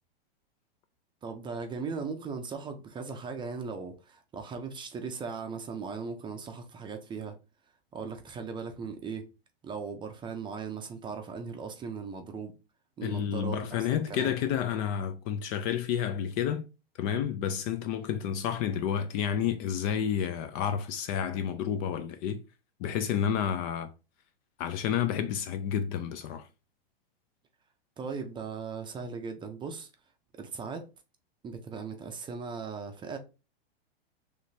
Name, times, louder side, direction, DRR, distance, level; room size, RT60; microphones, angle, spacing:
voice 1, 1.2-7.3 7.9-9.3 9.6-12.5 13.0-13.6 14.1-14.4 28.0-29.9 30.4-30.9 31.4-33.2, right 5 dB, 15° right, 0.6 m, -38 dB
voice 2, 13.0-16.6 17.0-22.4 22.8-23.9 24.6-26.5, left 8 dB, 35° left, 0.4 m, -30 dB
4.9 x 3.2 x 2.7 m
hypercardioid pair, 125°, 30 cm